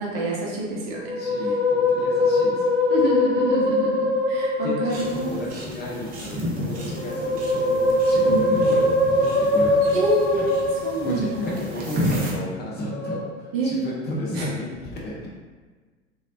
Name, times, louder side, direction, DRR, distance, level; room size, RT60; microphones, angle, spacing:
voice 1, 0.0-1.1 1.4-1.6 2.9-5.4 8.2-8.4 9.9-10.5 10.8-11.5 13.5-13.7 14.4-14.5, right 3 dB, 50° right, -3 dB, 0.9 m, -27 dB
Musical instrument, 0.9-5.5 6.8-11.7 12.8-13.2, left 2 dB, 80° left, 0.8 m, -22 dB
voice 2, 1.2-2.7 4.6-8.8 9.1-10.0 10.3-10.5 11.0-15.3, left 1 dB, 25° left, -4 dB, 0.7 m, -33 dB
sound 1, 4.9-12.3, equal, 25° right, 0.6 m, -32 dB
3.1 x 2.8 x 2.5 m, 1.4 s
figure-of-eight pair, 85°, 37 cm